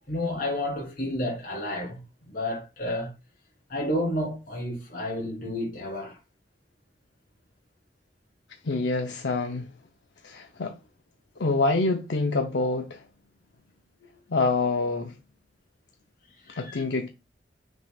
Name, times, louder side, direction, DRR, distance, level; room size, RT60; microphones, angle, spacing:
voice 1, 0.1-3.1 3.7-6.2 16.4-16.8, left 1 dB, 55° left, 3.4 m, -31 dB
voice 2, 8.6-9.7 10.2-10.7 11.4-13.0 14.3-15.1 16.6-17.1, left 3 dB, 75° left, 0.7 m, -26 dB
7.3 x 6.1 x 2.3 m
head